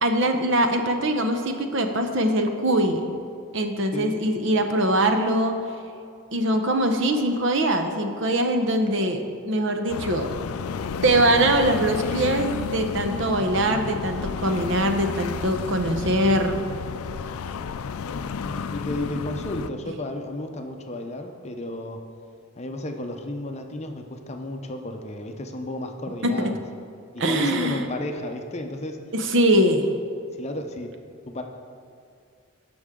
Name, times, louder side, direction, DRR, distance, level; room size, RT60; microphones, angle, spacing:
voice 1, 0.0-3.1 3.5-5.6 6.3-10.3 11.0-16.6 26.2-26.5 27.2-27.8 29.1-29.9, right 1 dB, 60° right, 6 dB, 0.8 m, -22 dB
voice 2, 3.9-4.3 18.4-22.0 22.6-26.6 27.1-29.1 30.4-31.0 31.3-31.4, left 1 dB, 30° left, 4 dB, 0.7 m, -33 dB
sound 1, 9.9-19.7, left 6 dB, 85° left, 0.4 m, -31 dB
17.0 x 6.2 x 3.7 m, 2.4 s
head